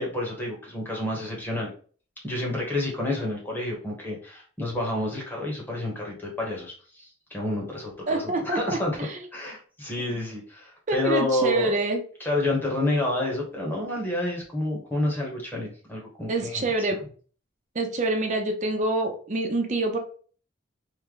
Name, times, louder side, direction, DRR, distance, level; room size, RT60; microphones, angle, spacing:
voice 1, 0.0-1.7 2.2-9.0 9.3-11.8 12.2-17.0, left 1 dB, 10° left, -2 dB, 1.0 m, -29 dB
voice 2, 8.1-9.2 10.9-12.0 16.3-17.0 17.7-20.0, right 2 dB, 35° right, 4 dB, 0.5 m, -26 dB
3.2 x 2.1 x 3.7 m, 0.42 s
head